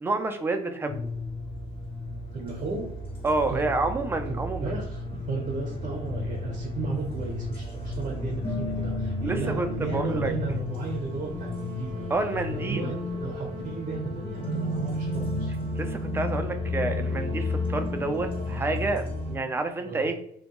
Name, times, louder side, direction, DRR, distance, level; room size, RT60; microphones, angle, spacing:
voice 1, 0.0-1.1 3.2-4.7 9.2-10.3 12.1-12.8 15.8-20.1, right 2 dB, 15° right, 6 dB, 0.3 m, -29 dB
sound 1, 0.9-19.4, left 2 dB, 30° left, 0.8 m, -32 dB
voice 2, 2.3-2.9 3.5-3.7 4.3-12.1 12.5-15.5 19.8-20.1, right 4 dB, 45° right, 0 dB, 0.7 m, -34 dB
2.2 x 2.1 x 2.9 m, 0.71 s
cardioid pair, 110°, 17 cm